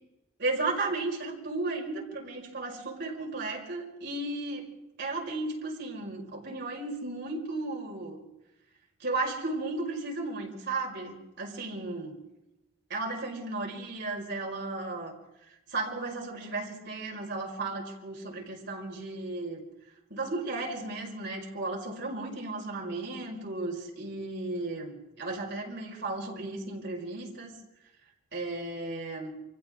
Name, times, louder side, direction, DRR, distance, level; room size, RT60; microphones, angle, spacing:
voice 1, 0.4-4.7 5.0-8.2 9.0-12.2 12.9-15.1 15.7-19.6 20.1-27.5 28.3-29.3, right 2 dB, 50° right, -1 dB, 5.2 m, -34 dB
29.0 x 25.0 x 3.8 m, 0.93 s
head